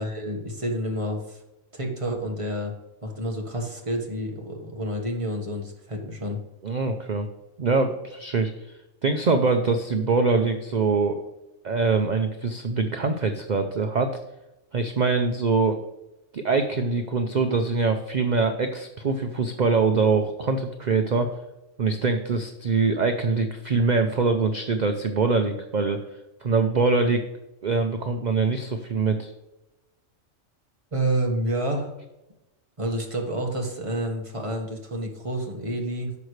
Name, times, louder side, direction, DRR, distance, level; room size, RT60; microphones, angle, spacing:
voice 1, 0.0-1.4 1.7-2.7 3.0-6.4 30.9-31.9 32.8-36.2, right 1 dB, 25° right, 1 dB, 1.5 m, -29 dB
voice 2, 6.6-7.3 7.6-8.5 9.0-11.3 11.6-14.2 14.7-15.8 16.3-21.3 21.8-26.0 26.4-27.2 27.6-29.3, right 4 dB, 45° right, 6 dB, 0.6 m, -23 dB
10.5 x 6.4 x 3.2 m, 0.94 s
omnidirectional pair, 1.4 m